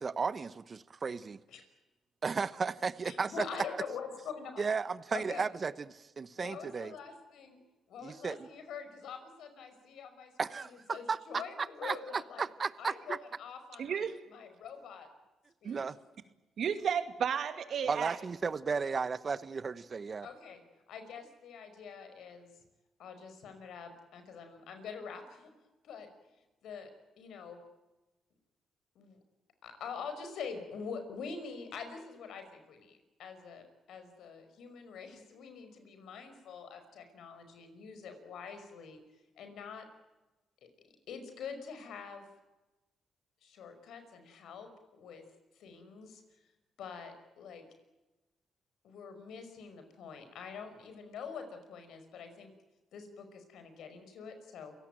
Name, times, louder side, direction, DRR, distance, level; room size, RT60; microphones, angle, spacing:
voice 1, 0.0-1.4 2.2-3.3 4.6-5.7 6.2-6.9 8.0-8.4 10.4-11.2 11.8-11.9 12.4-13.2 15.7-15.9 17.9-20.3, right 5 dB, 45° right, 15 dB, 1.1 m, -34 dB
voice 2, 3.0-4.7 5.1-5.5 6.4-7.6 7.9-12.4 12.8-15.1 15.6-15.8 20.2-22.6 23.0-25.5 25.8-26.1 26.6-26.9 27.2-27.6 29.0-29.2 29.6-39.0 39.4-39.9 40.6-40.7 41.1-42.3 43.4-45.2 45.5-46.2 46.8-47.7 48.8-52.5 52.9-54.7, left 6 dB, 75° left, 8 dB, 5.5 m, -45 dB
voice 3, 13.8-14.1 15.6-15.8 16.6-18.2, right 7 dB, 65° right, 9 dB, 2.4 m, -33 dB
28.5 x 17.5 x 9.1 m, 1.1 s
supercardioid pair, 65°, 0 cm